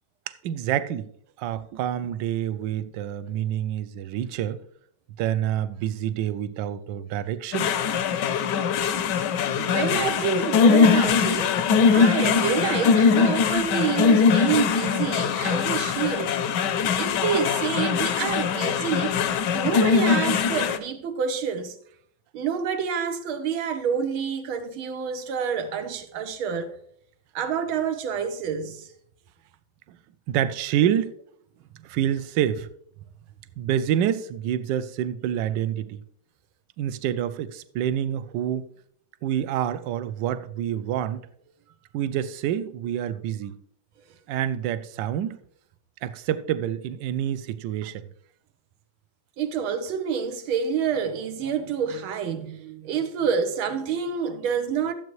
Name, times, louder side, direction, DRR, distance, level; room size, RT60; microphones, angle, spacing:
voice 1, 0.3-1.1 1.4-4.6 5.2-7.8 29.9-30.0 30.3-31.2 31.8-32.7 33.6-36.0 36.8-38.7 39.2-41.3 41.9-43.6 44.3-45.4 46.0-48.1, right 10 dB, 70° right, 1.2 m, -27 dB
sound 1, 7.5-20.8, left 6 dB, 70° left, 1.2 m, -21 dB
voice 2, 9.6-11.6 11.9-16.4 17.0-19.2 19.5-21.8 22.3-26.7 27.4-28.9 49.4-54.9, right 7 dB, 85° right, 1.8 m, -28 dB
12.5 x 7.9 x 3.1 m
omnidirectional pair, 2.2 m